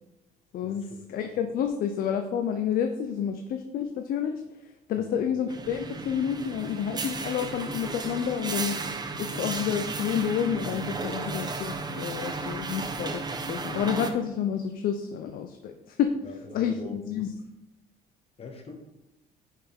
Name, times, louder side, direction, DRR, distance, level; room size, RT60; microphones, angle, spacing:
voice 1, 0.5-4.4 4.9-8.8 9.2-16.1 16.5-17.3, left 8 dB, 60° left, 6 dB, 0.5 m, -29 dB
sound 1, 5.5-14.1, right 3 dB, 25° right, 0.6 m, -34 dB
voice 2, 16.2-17.0 18.4-18.8, left 4 dB, 35° left, 3 dB, 1.1 m, -42 dB
5.6 x 4.8 x 3.5 m, 0.93 s
cardioid pair, 110°, 17 cm